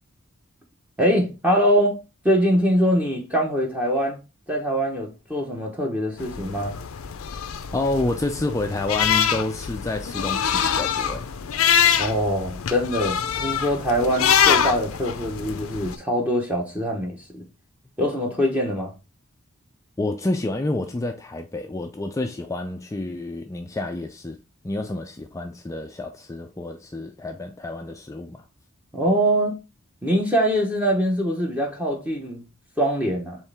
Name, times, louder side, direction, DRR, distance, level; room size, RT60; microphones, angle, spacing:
voice 1, 1.0-2.0 2.2-4.2 4.5-6.8 12.0-17.4 18.0-18.9 28.9-29.6 30.0-32.4 32.8-33.4, equal, 5° right, 0.8 m, -23 dB
sound 1, 6.2-15.9, left 8 dB, 80° left, 0.5 m, -24 dB
voice 2, 7.7-11.3 20.0-24.4 24.6-28.4, left 2 dB, 15° left, 0.3 m, -29 dB
4.6 x 3.2 x 3.3 m
head